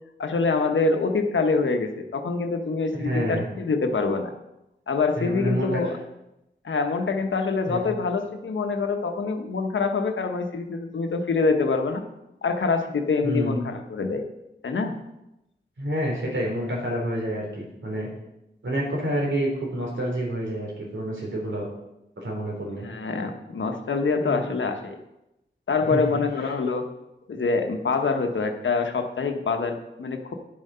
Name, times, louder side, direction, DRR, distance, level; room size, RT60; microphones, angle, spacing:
voice 1, 0.2-4.3 4.9-6.0 6.6-12.0 12.4-14.2 14.6-14.9 22.8-25.0 25.7-26.9 27.3-30.3, left 4 dB, 85° left, 5 dB, 1.2 m, -25 dB
voice 2, 2.9-3.5 5.2-5.7 7.7-7.8 13.2-13.6 15.8-18.1 18.6-21.7 22.2-22.9 24.2-24.4 25.9-26.0 26.4-26.5, right 1 dB, 85° right, -2 dB, 3.7 m, -28 dB
9.8 x 7.6 x 5.6 m, 0.90 s
wide cardioid pair, 75°, 19 cm